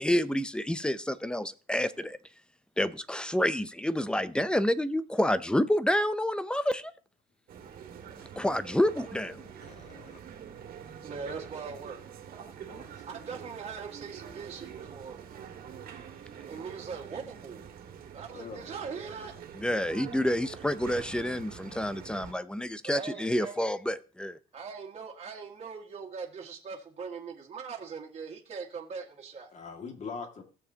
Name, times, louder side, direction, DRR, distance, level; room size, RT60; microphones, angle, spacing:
voice 1, 0.0-2.2 2.8-6.9 8.4-9.5 19.6-24.4, left 1 dB, 5° left, 0.6 m, -28 dB
sound 1, 7.5-22.3, right 8 dB, 60° right, 1.9 m, -46 dB
voice 2, 9.5-10.2 12.7-13.0 18.3-18.6 29.5-30.4, left 5 dB, 45° left, 2.2 m, -43 dB
voice 3, 11.0-12.0 13.1-15.2 16.5-17.7 18.1-19.3 22.8-23.6 24.5-29.5, right 5 dB, 40° right, 1.8 m, -41 dB
16.5 x 7.1 x 2.9 m
cardioid pair, 110°, 17 cm